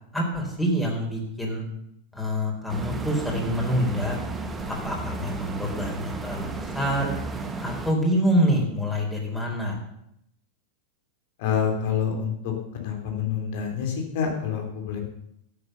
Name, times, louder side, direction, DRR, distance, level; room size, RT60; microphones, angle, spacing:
voice 1, 0.1-1.7 2.1-4.2 4.7-7.1 7.6-9.8, equal, 5° left, -1 dB, 4.1 m, -26 dB
sound 1, 2.7-7.9, right 3 dB, 15° right, 1.6 m, -33 dB
voice 2, 11.4-15.0, left 7 dB, 55° left, 2 dB, 3.3 m, -27 dB
12.0 x 8.0 x 6.8 m, 0.77 s
figure-of-eight pair, 90°, 0 cm